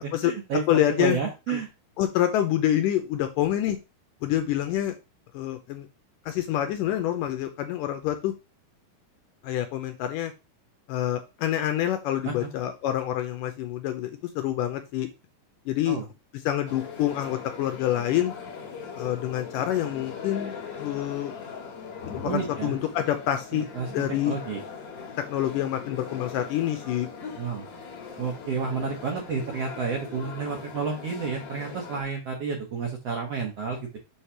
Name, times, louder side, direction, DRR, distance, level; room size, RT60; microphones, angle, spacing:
voice 1, 0.0-1.7 12.2-12.5 15.9-16.0 22.2-22.7 23.7-23.9 24.2-24.6 27.4-27.6 28.2-34.0, right 5 dB, 60° right, 1 dB, 1.7 m, -30 dB
voice 2, 0.7-1.2 1.5-1.6 2.0-3.8 4.2-5.0 5.3-5.9 6.3-8.3 9.4-10.3 10.9-15.1 15.7-16.0 16.5-18.3 19.0-21.3 22.1-23.7 23.9-24.4 25.2-27.1, left 12 dB, 80° left, 7 dB, 2.0 m, -27 dB
sound 1, 16.7-32.0, left 6 dB, 50° left, 2.0 m, -40 dB
7.2 x 3.3 x 5.6 m, 0.27 s
omnidirectional pair, 4.3 m